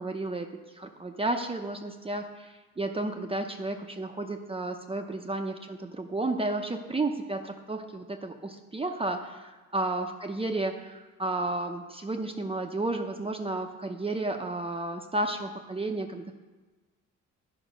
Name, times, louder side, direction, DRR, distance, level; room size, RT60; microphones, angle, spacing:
voice 1, 0.0-16.4, right 2 dB, 20° right, 4 dB, 0.7 m, -32 dB
11.0 x 5.1 x 5.1 m, 1.3 s
cardioid pair, 90°, 30 cm